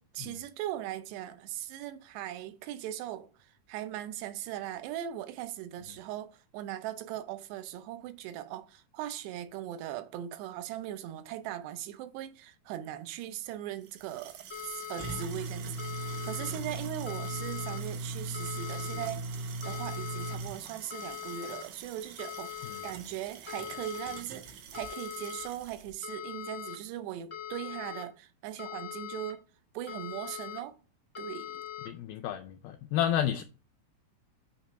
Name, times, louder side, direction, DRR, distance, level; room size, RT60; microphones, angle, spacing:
voice 1, 0.0-14.4 14.6-29.4 29.7-30.8 31.2-31.6, right 12 dB, 90° right, 2.8 m, -39 dB
sound 1, 13.9-25.9, right 3 dB, 70° right, 2.0 m, -40 dB
sound 2, 14.5-15.2 15.8-16.5 17.1-17.8 18.3-19.1 19.6-20.3 20.9-21.6 22.2-22.9 23.5-24.2 24.7-25.5 26.0-26.8 27.3-28.0 28.6-29.3 29.9-30.6 31.1-31.9, left 11 dB, 55° left, 0.8 m, -41 dB
voice 2, 31.9-33.4, left 10 dB, 85° left, 2.1 m, -30 dB
8.7 x 3.0 x 5.6 m
omnidirectional pair, 4.7 m